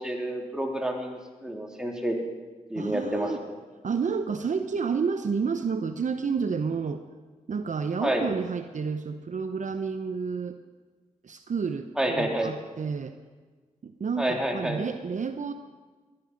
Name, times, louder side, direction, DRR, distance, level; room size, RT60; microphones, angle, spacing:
voice 1, 0.0-2.2 2.7-3.5 8.0-8.2 12.0-12.5 14.2-14.8, right 1 dB, 5° right, 1 dB, 3.3 m, -29 dB
voice 2, 2.8-3.4 3.8-7.0 7.5-10.6 11.2-13.2 13.8-15.5, right 5 dB, 60° right, 8 dB, 0.9 m, -30 dB
20.5 x 11.5 x 5.3 m, 1.4 s
cardioid pair, 50°, 14 cm